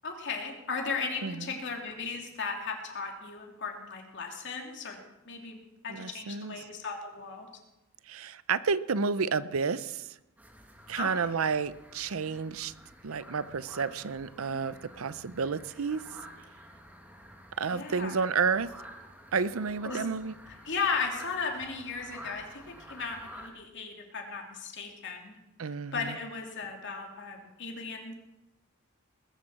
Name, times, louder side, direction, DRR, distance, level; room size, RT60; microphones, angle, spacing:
voice 1, 0.0-5.0 5.3-5.6 5.8-7.5 11.0-11.3 14.5-14.6 17.7-18.3 19.8-20.0 20.5-25.4 25.9-28.1, left 5 dB, 60° left, 2 dB, 2.8 m, -36 dB
voice 2, 5.9-6.5 8.1-10.1 10.9-12.7 13.0-16.0 17.6-18.7 19.3-20.3 25.6-26.1, right 5 dB, 75° right, 16 dB, 0.6 m, -31 dB
sound 1, 10.4-23.5, equal, 10° right, 2.0 m, -50 dB
20.5 x 7.6 x 7.4 m, 0.95 s
head